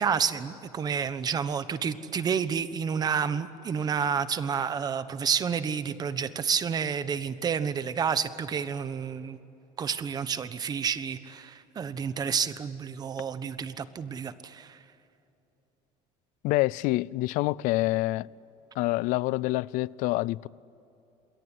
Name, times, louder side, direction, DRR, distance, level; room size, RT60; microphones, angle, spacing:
voice 1, 0.0-9.4 9.8-14.8, right 7 dB, 30° right, 1.2 m, -30 dB
voice 2, 16.4-18.3 18.8-20.5, left 19 dB, 70° left, 0.5 m, -26 dB
28.0 x 22.0 x 9.8 m
cardioid pair, 150°, 14 cm